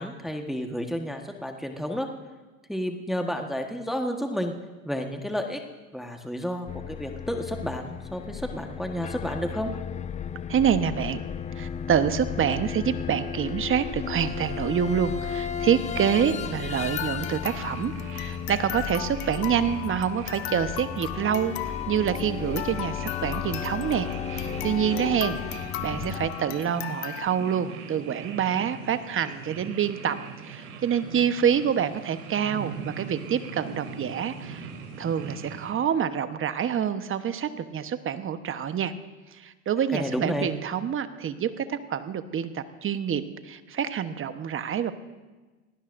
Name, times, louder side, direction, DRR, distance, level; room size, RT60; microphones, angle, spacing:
voice 1, 0.0-2.1 2.7-4.5 4.8-5.6 5.9-9.7 39.9-40.5, equal, ahead, 3 dB, 1.4 m, -31 dB
sound 1, 6.7-26.3, left 8 dB, 15° left, 0.5 m, -34 dB
voice 2, 10.5-11.2 11.6-30.2 30.5-34.7 35.0-38.9 39.4-44.9, right 8 dB, 30° right, 10 dB, 1.1 m, -27 dB
sound 2, 16.8-27.3, left 14 dB, 60° left, 1.2 m, -37 dB
sound 3, 17.4-35.7, right 5 dB, 75° right, 3.7 m, -42 dB
26.5 x 18.5 x 2.6 m, 1.2 s
hypercardioid pair, 90°, 42 cm